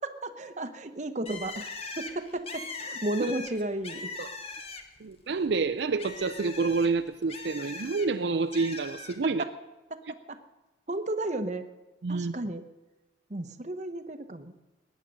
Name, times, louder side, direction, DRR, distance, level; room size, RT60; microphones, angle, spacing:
voice 1, 0.0-4.1 9.2-9.5 9.9-10.4 10.9-11.6 12.1-12.6 13.3-14.7, right 1 dB, 40° right, 8 dB, 0.9 m, -34 dB
Bird, 1.2-5.1 5.4-8.1 8.5-9.2, left 4 dB, 30° left, 1.2 m, -40 dB
voice 2, 5.0-9.4 12.0-12.3, right 4 dB, 65° right, 9 dB, 0.5 m, -28 dB
20.0 x 9.2 x 6.4 m, 1.1 s
head